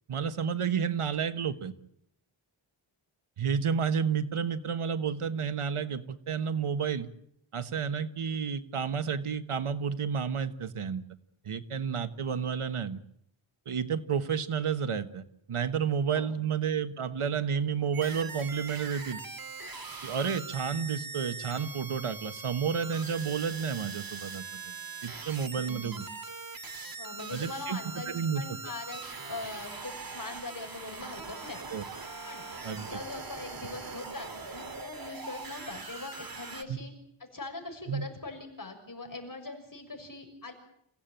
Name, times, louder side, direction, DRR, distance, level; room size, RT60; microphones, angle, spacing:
voice 1, 0.1-1.7 3.4-7.1 7.5-11.0 11.4-13.0 13.7-19.2 20.0-24.7 25.0-26.0 27.3-27.8 28.1-28.4 31.7-31.8 32.6-32.9 36.7-36.8 37.9-38.1, right 7 dB, 85° right, 11 dB, 1.4 m, -31 dB
sound 1, 17.9-36.6, right 4 dB, 45° right, 2.2 m, -42 dB
voice 2, 25.4-26.0 27.0-31.6 32.2-32.4 32.7-36.9 37.2-40.5, left 3 dB, 40° left, 3 dB, 6.5 m, -42 dB
28.0 x 16.5 x 9.1 m, 0.74 s
wide cardioid pair, 90°, 50 cm